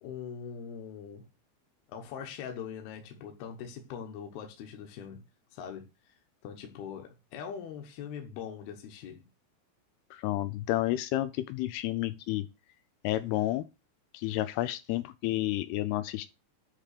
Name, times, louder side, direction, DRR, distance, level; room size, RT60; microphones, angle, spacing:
voice 1, 0.0-1.3 1.9-5.2 5.5-6.1 6.4-9.3, left 7 dB, 70° left, 2.8 m, -42 dB
voice 2, 10.1-12.4 13.0-13.6 14.1-16.3, left 15 dB, 85° left, 2.3 m, -30 dB
10.0 x 3.7 x 6.6 m
omnidirectional pair, 5.2 m